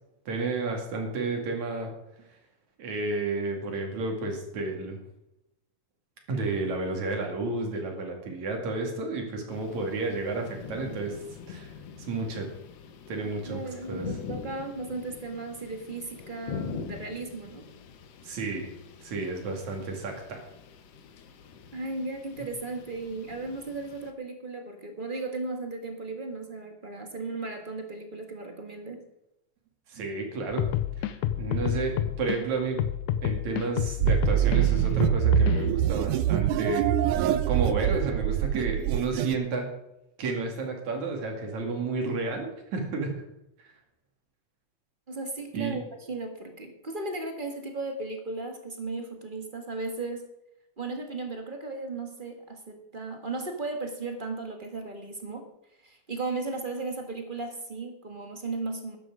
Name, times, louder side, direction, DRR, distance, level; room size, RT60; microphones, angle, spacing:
voice 1, 0.3-1.9 2.8-5.0 6.3-12.5 13.1-13.6 13.9-14.1 18.2-18.7 19.0-20.4 22.4-22.5 29.9-30.7 31.0-32.9 33.2-39.7 40.2-42.5 42.7-43.1 43.6-43.7 45.5-45.8, right 3 dB, 65° right, 2 dB, 3.7 m, -31 dB
sound 1, 9.5-24.1, left 6 dB, 60° left, 2.0 m, -44 dB
voice 2, 13.2-17.6 21.7-29.0 45.1-50.3 50.8-55.5 55.8-59.0, right 3 dB, 30° right, 4 dB, 1.0 m, -36 dB
sound 2, 30.5-32.4 32.8-35.7, left 11 dB, 85° left, 2.2 m, -29 dB
sound 3, 34.0-39.3, right 11 dB, 80° right, 2.1 m, -24 dB
13.5 x 10.5 x 4.9 m, 0.86 s
omnidirectional pair, 3.6 m